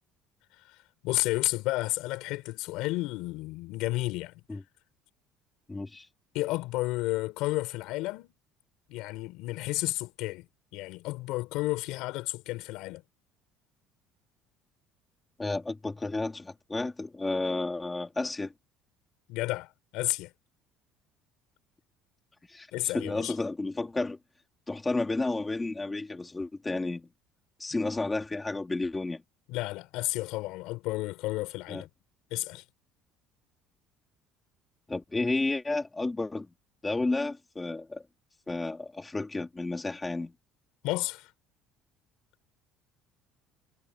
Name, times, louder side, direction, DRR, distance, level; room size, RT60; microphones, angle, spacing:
voice 1, 1.0-4.4 6.3-8.3 8.9-13.0 19.3-20.3 22.7-23.3 29.5-31.9 32.3-32.6 40.8-41.3, left 19 dB, 70° left, 4.5 m, -32 dB
voice 2, 5.7-6.1 15.4-18.5 22.5-24.2 24.7-27.1 27.6-29.2 31.7-31.8 34.9-36.5 36.8-38.0 38.5-40.3, left 2 dB, 10° left, 2.8 m, -32 dB
cardioid pair, 175°, 0 cm